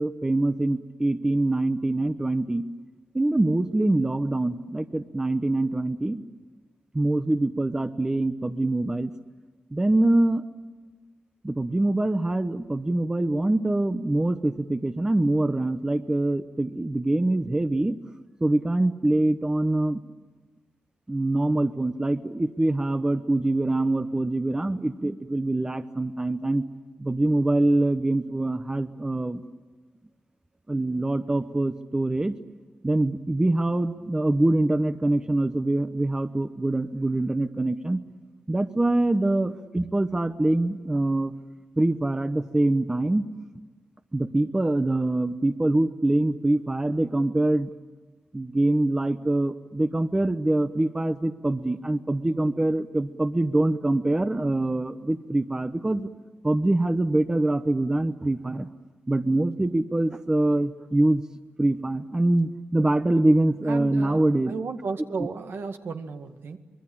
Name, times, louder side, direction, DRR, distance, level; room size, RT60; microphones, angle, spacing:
voice 1, 0.0-2.6 3.1-6.2 6.9-9.1 9.7-10.5 11.4-18.0 18.4-20.0 21.1-26.6 27.0-29.4 30.7-32.3 32.8-38.0 38.5-41.3 41.8-43.2 44.1-47.7 48.3-56.1 56.4-58.7 59.1-61.2 61.6-64.5, right 2 dB, 15° right, 10 dB, 0.9 m, -24 dB
voice 2, 63.7-66.6, right 4 dB, 70° right, 6 dB, 2.0 m, -34 dB
25.5 x 22.0 x 8.6 m, 1.3 s
wide cardioid pair, 100°, 4 cm